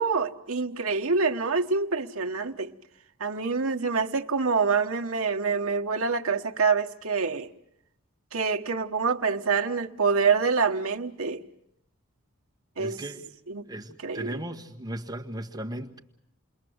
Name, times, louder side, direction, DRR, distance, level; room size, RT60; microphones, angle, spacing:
voice 1, 0.0-2.7 3.2-7.5 8.3-11.4 12.8-13.0 13.5-13.6 14.0-14.4, right 5 dB, 70° right, 1.2 m, -26 dB
voice 2, 12.8-13.3 13.7-16.0, right 1 dB, 15° right, 1.4 m, -36 dB
29.0 x 21.5 x 7.9 m
head